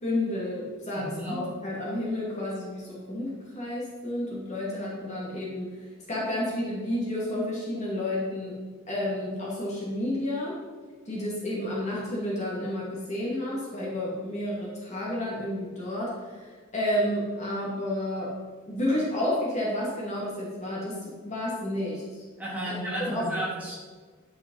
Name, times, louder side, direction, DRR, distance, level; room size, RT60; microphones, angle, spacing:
voice 1, 0.0-8.5 8.9-10.6 11.1-18.3 18.7-22.0 22.6-22.8 23.1-23.3, left 1 dB, 30° left, -5 dB, 2.5 m, -31 dB
voice 2, 0.9-1.4 22.4-23.8, right 1 dB, 5° right, -7 dB, 3.1 m, -33 dB
11.0 x 5.7 x 5.6 m, 1.5 s
head